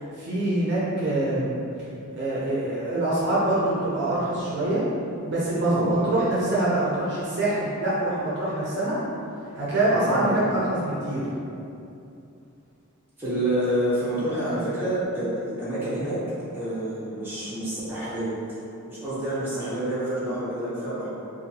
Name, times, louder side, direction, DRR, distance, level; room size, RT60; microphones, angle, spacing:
voice 1, 0.1-1.6 2.2-4.9 5.2-9.0 9.5-11.2, right 1 dB, 50° right, -8 dB, 0.5 m, -25 dB
voice 2, 5.6-6.1 9.9-10.5 13.2-16.2 16.5-18.6 18.9-21.1, right 1 dB, 10° right, -12 dB, 0.8 m, -28 dB
2.7 x 2.3 x 2.7 m, 2.7 s
head